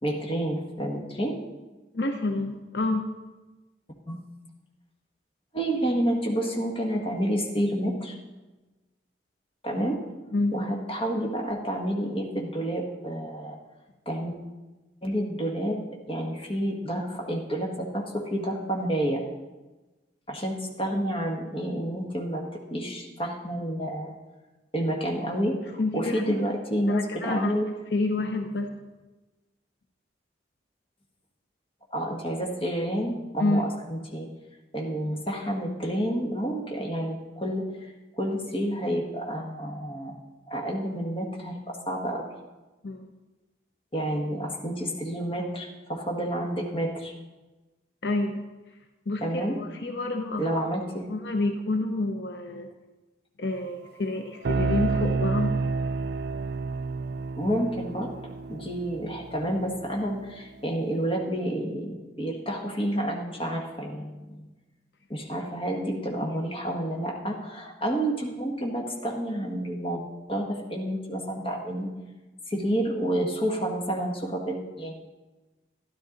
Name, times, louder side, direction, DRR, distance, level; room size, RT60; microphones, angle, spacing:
voice 1, 0.0-1.4 4.1-4.2 5.5-8.1 9.6-10.0 10.5-13.6 14.0-14.3 15.0-15.8 16.1-19.2 20.3-24.2 24.7-27.7 31.9-34.3 34.7-40.1 40.5-42.3 43.9-47.1 49.2-49.6 50.4-51.1 57.3-58.1 58.5-64.5 65.1-71.9 72.5-75.1, right 1 dB, 30° left, 0 dB, 1.5 m, -29 dB
voice 2, 1.9-3.1 10.3-10.6 25.8-26.4 26.9-27.5 27.9-28.8 33.4-33.6 42.8-43.1 48.0-48.4 49.1-50.7 51.1-52.7 53.4-55.5 66.2-66.3, left 2 dB, 70° left, 5 dB, 0.7 m, -28 dB
sound 1, 54.4-60.0, right 4 dB, 65° right, 0.3 m, -29 dB
13.0 x 11.0 x 3.9 m, 1.2 s
head